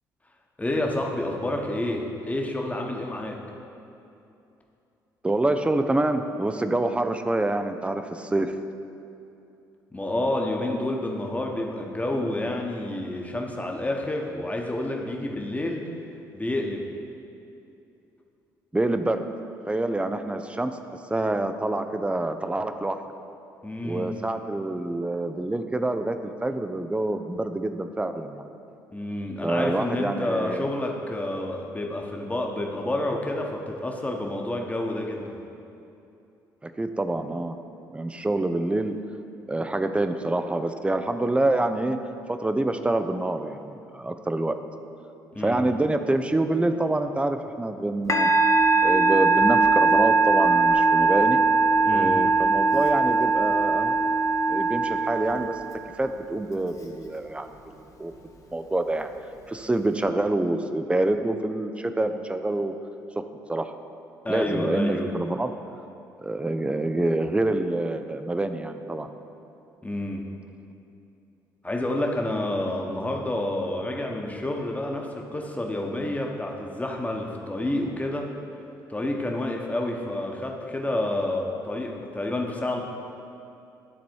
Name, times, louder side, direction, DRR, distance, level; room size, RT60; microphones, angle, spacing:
voice 1, 0.6-3.4 9.9-15.8 16.3-16.8 23.6-24.1 28.9-35.4 45.3-45.6 51.8-52.2 64.2-65.1 69.8-70.2 71.6-78.3 78.9-82.8, left 1 dB, 15° left, 1 dB, 1.2 m, -29 dB
voice 2, 5.2-8.6 18.7-19.2 19.7-23.0 23.8-28.4 29.4-30.7 36.6-37.6 37.9-38.9 39.5-42.0 42.3-44.6 45.4-48.3 48.8-51.4 51.9-53.9 54.5-55.6 56.0-58.1 58.5-59.1 59.5-62.7 63.2-63.7 64.3-65.5 66.2-69.1, right 2 dB, 10° right, 8 dB, 0.5 m, -26 dB
Musical instrument, 48.1-55.7, right 3 dB, 30° left, 1.0 m, -20 dB
12.0 x 4.1 x 4.6 m, 2.7 s
hypercardioid pair, 50°, 10 cm